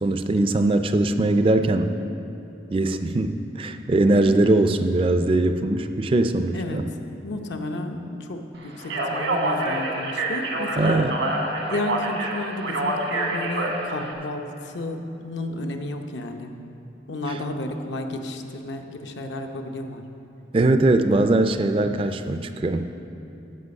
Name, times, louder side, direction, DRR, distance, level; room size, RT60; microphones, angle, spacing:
voice 1, 0.0-2.0 2.7-6.8 10.7-11.2 20.5-23.0, right 2 dB, 30° right, 9 dB, 0.3 m, -21 dB
voice 2, 6.5-6.8 7.2-11.0 11.7-16.5 17.1-20.1, left 2 dB, 80° left, 4 dB, 0.7 m, -32 dB
Speech, 8.8-14.1, right 2 dB, 85° right, 1.3 m, -27 dB
14.0 x 5.8 x 5.3 m, 2.8 s
head